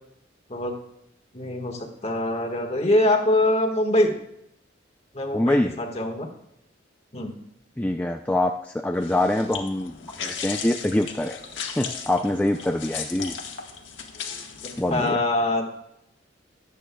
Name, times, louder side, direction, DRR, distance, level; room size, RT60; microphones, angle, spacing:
voice 1, 1.3-4.1 5.1-6.3 7.1-7.3 14.6-15.8, left 1 dB, 35° left, 2 dB, 1.6 m, -24 dB
voice 2, 5.3-5.7 7.8-9.9 10.2-11.4 11.7-13.4 14.8-15.2, left 1 dB, 10° left, 4 dB, 0.4 m, -24 dB
sound 1, 8.9-15.1, left 6 dB, 85° left, 1.5 m, -36 dB
23.5 x 8.4 x 2.3 m, 0.80 s
head